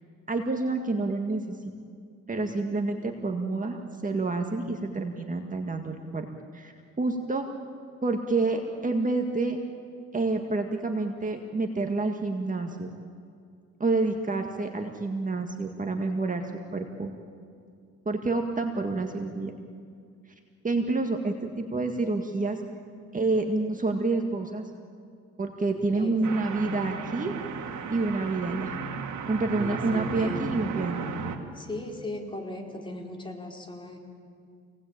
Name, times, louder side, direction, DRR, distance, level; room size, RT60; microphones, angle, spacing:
voice 1, 0.3-1.6 2.3-6.3 6.5-7.6 8.0-9.6 10.1-12.9 13.8-17.1 18.1-19.5 20.6-22.6 23.1-24.6 25.4-27.4 27.9-28.8 29.3-31.1, right 3 dB, 25° right, 3 dB, 1.9 m, -28 dB
voice 2, 25.9-26.4 29.6-30.5 31.5-34.0, left 1 dB, 15° left, 0 dB, 4.4 m, -38 dB
sound 1, 26.2-31.4, right 6 dB, 70° right, 2.4 m, -34 dB
27.5 x 19.0 x 9.0 m, 2.3 s
cardioid pair, 90°, 30 cm